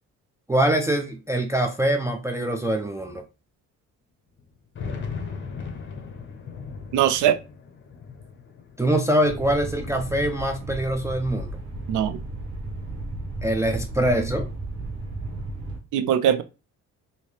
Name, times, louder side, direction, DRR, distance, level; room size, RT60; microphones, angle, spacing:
voice 1, 0.5-3.2 8.8-11.6 13.4-14.5, right 1 dB, 10° right, 0.4 m, -24 dB
sound 1, 1.1-1.2 2.1-2.2 2.6-2.7 4.4-10.8 11.2-12.2, left 5 dB, 40° left, 0.9 m, -38 dB
voice 2, 6.9-7.4 11.9-12.2 15.9-16.4, right 10 dB, 85° right, 0.5 m, -20 dB
sound 2, 9.2-15.8, right 2 dB, 70° right, 1.2 m, -34 dB
3.2 x 2.8 x 3.2 m
cardioid pair, 90°, 30 cm